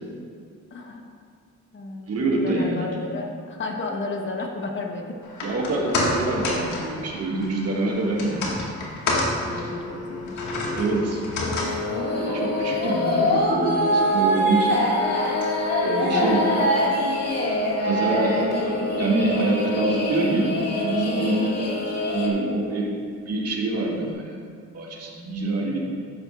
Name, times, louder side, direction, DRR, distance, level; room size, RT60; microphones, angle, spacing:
voice 1, 0.7-1.0 1.7-5.1 9.4-10.5 21.3-21.6, left 3 dB, 40° left, 2 dB, 1.1 m, -33 dB
voice 2, 2.1-3.0 5.4-8.4 9.5-9.7 10.8-11.2 12.1-15.0 15.8-16.5 17.8-21.5 21.8-22.9 23.3-24.4 24.7-25.8, right 2 dB, 55° right, -3 dB, 2.2 m, -25 dB
sound 1, 5.2-17.6 17.9-18.0, left 2 dB, 80° left, 1.8 m, -31 dB
sound 2, 11.4-22.3, left 1 dB, 55° left, 2.1 m, -24 dB
12.5 x 8.8 x 2.5 m, 2.2 s
cardioid pair, 90°, 30 cm